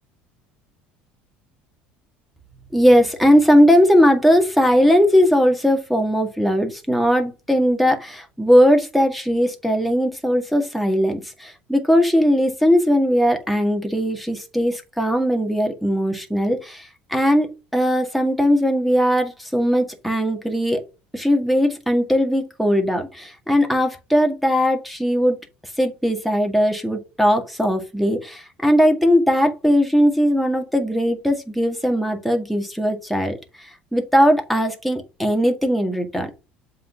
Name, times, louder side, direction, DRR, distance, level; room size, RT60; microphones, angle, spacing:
voice 1, 2.7-20.8 21.1-25.4 25.8-36.3, equal, ahead, 3 dB, 1.9 m, -19 dB
7.5 x 4.0 x 5.1 m, 0.29 s
hypercardioid pair, 85°, 5 cm